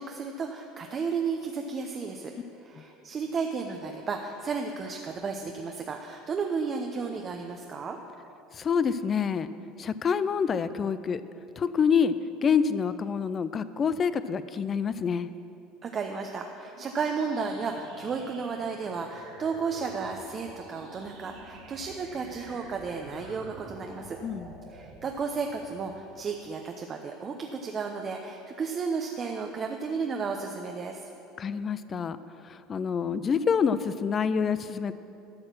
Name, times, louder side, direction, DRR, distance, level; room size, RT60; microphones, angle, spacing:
voice 1, 0.0-2.3 2.6-8.0 15.8-24.2 24.7-31.1, right 5 dB, 35° right, 3 dB, 0.7 m, -33 dB
voice 2, 8.6-9.5 9.8-11.2 11.6-12.1 12.4-15.3 24.2-24.5 31.4-32.2 32.5-34.9, left 6 dB, 35° left, 14 dB, 0.4 m, -27 dB
sound 1, 16.7-26.2, right 2 dB, 80° right, 2.6 m, -48 dB
12.0 x 6.4 x 6.1 m, 2.7 s
supercardioid pair, 105°, 0 cm